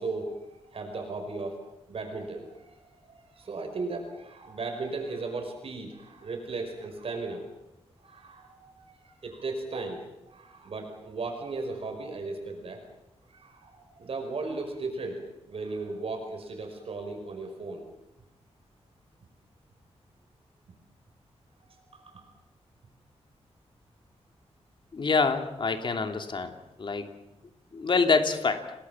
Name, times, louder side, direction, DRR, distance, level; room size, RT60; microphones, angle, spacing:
voice 1, 0.0-1.6 1.9-7.5 8.0-12.8 13.3-17.9 21.6-22.3, right 3 dB, 60° right, 4 dB, 5.4 m, -36 dB
voice 2, 24.9-26.5 26.8-27.1 27.7-28.6, left 4 dB, 45° left, 6 dB, 2.9 m, -26 dB
29.5 x 20.5 x 7.3 m, 0.90 s
wide cardioid pair, 140°, 11 cm